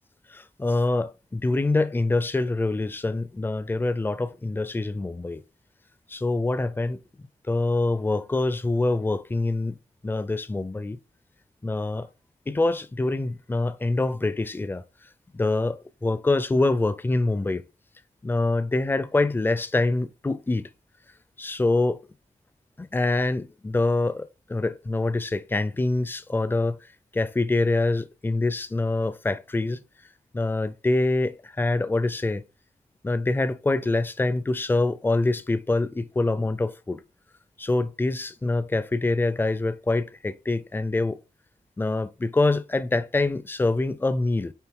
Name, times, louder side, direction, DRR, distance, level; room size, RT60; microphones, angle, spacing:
voice 1, 0.3-5.4 6.1-9.8 10.0-11.0 11.6-12.1 12.5-14.8 15.3-17.6 18.2-20.7 21.4-22.0 22.8-29.8 30.3-32.4 33.0-37.0 37.6-41.2 41.8-44.5, left 2 dB, 15° left, 0.4 m, -25 dB
9.0 x 3.6 x 3.7 m
wide cardioid pair, 170°, 14 cm